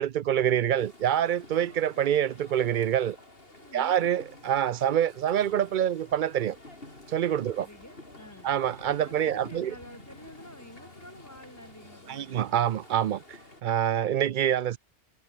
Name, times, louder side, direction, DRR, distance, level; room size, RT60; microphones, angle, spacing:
voice 1, 0.0-3.2 3.7-6.6 7.1-7.7 8.4-9.7 12.1-14.8, right 10 dB, 60° right, 0.6 m, -26 dB
sound 1, 0.8-13.6, left 2 dB, 60° left, 5.2 m, -50 dB
voice 2, 3.6-4.0 7.4-8.5 9.0-12.5, equal, 15° left, 5.1 m, -49 dB
omnidirectional pair, 1.1 m